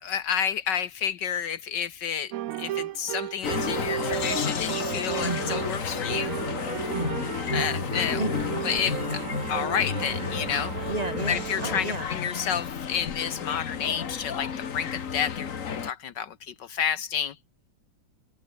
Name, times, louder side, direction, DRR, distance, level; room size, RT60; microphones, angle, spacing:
voice 1, 0.0-2.3 2.6-6.3 7.5-8.2 8.6-10.7 11.3-15.5 15.8-17.4, left 8 dB, 65° left, 1.5 m, -30 dB
sound 1, 2.3-11.8, right 14 dB, 80° right, 0.7 m, -34 dB
sound 2, 3.4-15.9, left 7 dB, 45° left, 1.6 m, -32 dB
voice 2, 5.2-5.6 6.9-7.9 8.2-8.3 10.9-12.1, right 2 dB, 20° right, 2.6 m, -33 dB
omnidirectional pair, 2.1 m